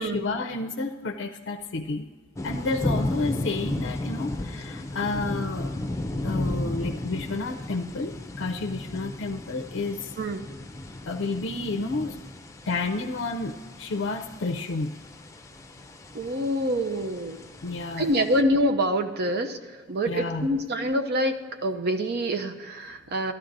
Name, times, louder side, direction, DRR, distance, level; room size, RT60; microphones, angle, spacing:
voice 1, 0.0-2.1 2.4-5.7 6.2-10.1 11.1-12.2 12.7-14.9 17.6-18.1 20.1-20.5, left 3 dB, 65° left, 4 dB, 0.5 m, -31 dB
sound 1, 2.4-18.4, left 1 dB, 15° left, 0.6 m, -34 dB
voice 2, 10.2-10.5 16.1-17.4 18.0-19.6 19.9-23.3, equal, 55° right, 7 dB, 0.6 m, -26 dB
14.5 x 12.0 x 2.6 m, 1.5 s
head